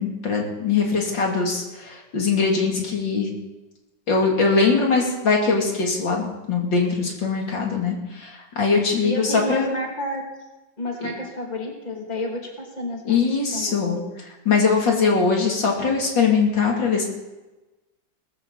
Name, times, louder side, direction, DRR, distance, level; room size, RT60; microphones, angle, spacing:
voice 1, 0.0-3.3 4.1-9.7 11.0-11.1 13.1-14.0 14.5-17.0, left 4 dB, 90° left, -1 dB, 3.7 m, -21 dB
voice 2, 9.0-10.2 10.8-13.2 13.5-13.9, left 1 dB, 25° left, 0 dB, 2.8 m, -30 dB
18.5 x 15.5 x 4.2 m, 1.1 s
omnidirectional pair, 1.9 m